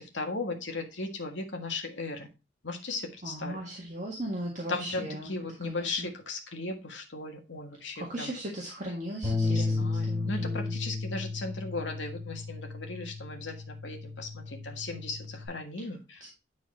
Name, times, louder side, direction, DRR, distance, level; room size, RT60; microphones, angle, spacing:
voice 1, 0.0-2.3 2.6-3.6 4.7-8.3 9.4-16.3, left 3 dB, 90° left, 1.6 m, -37 dB
voice 2, 3.2-5.3 5.6-6.1 8.0-10.7, right 1 dB, 45° right, 1.7 m, -37 dB
Bass guitar, 9.2-15.5, left 3 dB, 25° right, 5.7 m, -33 dB
10.0 x 4.1 x 4.2 m
head